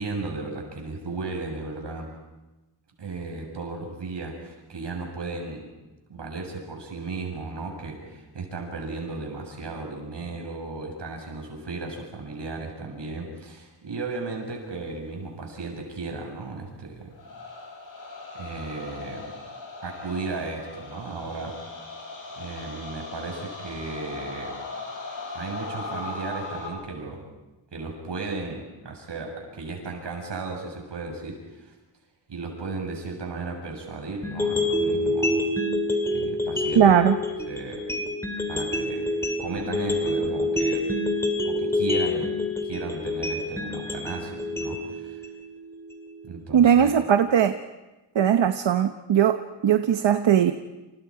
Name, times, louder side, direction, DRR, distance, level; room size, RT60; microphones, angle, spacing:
voice 1, 0.0-2.1 3.0-5.7 6.1-17.1 18.3-19.2 19.8-21.6 22.3-24.6 25.3-27.2 27.7-31.7 32.3-35.4 36.1-36.9 37.5-37.8 38.5-39.1 39.4-40.9 41.4-42.3 42.6-45.2 46.2-46.9, right 3 dB, 75° right, 2 dB, 7.0 m, -35 dB
sound 1, 17.1-26.7, left 3 dB, 50° left, 7.2 m, -38 dB
sound 2, 34.2-46.2, left 1 dB, 5° left, 2.6 m, -27 dB
voice 2, 36.8-37.2 46.5-47.6 48.1-50.5, right 9 dB, 90° right, 8 dB, 1.0 m, -19 dB
29.5 x 28.0 x 4.9 m, 1.1 s
wide cardioid pair, 180°, 43 cm